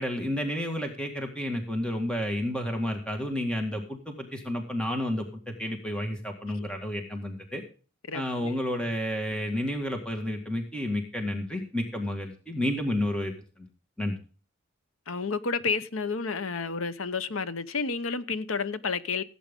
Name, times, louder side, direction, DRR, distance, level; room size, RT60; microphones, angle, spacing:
voice 1, 0.0-7.6 8.1-13.3 14.0-14.1, left 1 dB, 5° left, 1.8 m, -31 dB
voice 2, 8.1-8.5 15.1-19.2, left 4 dB, 90° left, 0.9 m, -31 dB
16.5 x 8.7 x 3.6 m
head